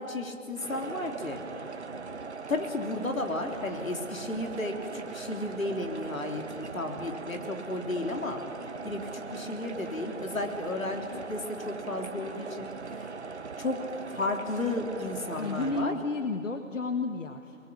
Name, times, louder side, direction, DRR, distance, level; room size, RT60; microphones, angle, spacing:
voice 1, 0.0-1.4 2.5-8.4 8.8-12.7 13.6-15.9, left 2 dB, 85° left, 4 dB, 3.5 m, -33 dB
sound 1, 0.6-15.8, right 4 dB, 55° right, 1.2 m, -40 dB
voice 2, 15.4-17.6, left 3 dB, 65° left, 6 dB, 1.6 m, -32 dB
24.5 x 21.5 x 8.6 m, 2.4 s
figure-of-eight pair, 175°, 40 cm